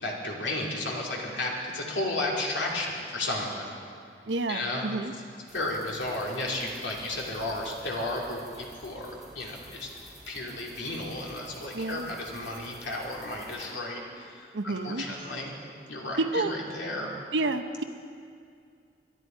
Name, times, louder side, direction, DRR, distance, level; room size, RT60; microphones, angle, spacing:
voice 1, 0.0-3.7 4.5-4.8 5.5-9.9 10.3-15.5 15.9-17.1, left 2 dB, 85° left, -2 dB, 2.9 m, -33 dB
voice 2, 4.3-5.1 11.7-12.1 14.5-15.0 16.2-16.6 17.3-17.8, right 2 dB, 90° right, 8 dB, 0.8 m, -29 dB
sound 1, 5.5-13.7, right 1 dB, ahead, 3.2 m, -51 dB
21.5 x 12.0 x 4.5 m, 2.3 s
head